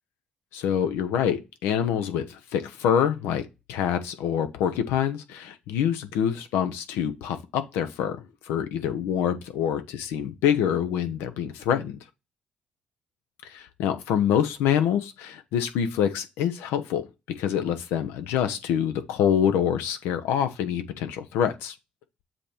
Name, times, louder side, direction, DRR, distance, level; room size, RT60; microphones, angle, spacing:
voice 1, 0.5-8.2 8.5-12.0 13.4-17.1 17.4-21.7, left 9 dB, 80° left, 0.8 m, -26 dB
7.5 x 2.9 x 5.0 m
hypercardioid pair, 45°, 4 cm